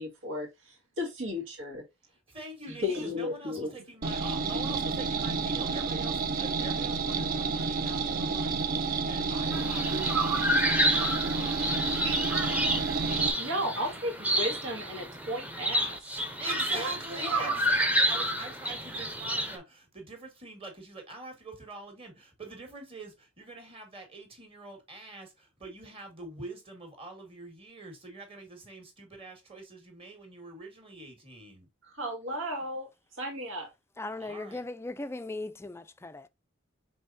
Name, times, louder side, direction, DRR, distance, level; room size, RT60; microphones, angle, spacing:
voice 1, 0.0-1.8 2.8-3.7 12.0-12.2 13.4-16.0 16.7-17.6 31.8-33.7, left 1 dB, 80° right, 2.0 m, -34 dB
voice 2, 2.3-12.0 12.5-12.6 13.5-14.0 16.4-31.7 34.2-34.6, right 2 dB, 30° right, 1.8 m, -45 dB
sound 1, 4.0-13.3, right 4 dB, 45° right, 0.5 m, -30 dB
sound 2, 9.5-19.6, right 1 dB, 10° right, 0.7 m, -29 dB
voice 3, 34.0-36.3, left 2 dB, 15° left, 0.3 m, -38 dB
5.4 x 3.4 x 2.7 m
head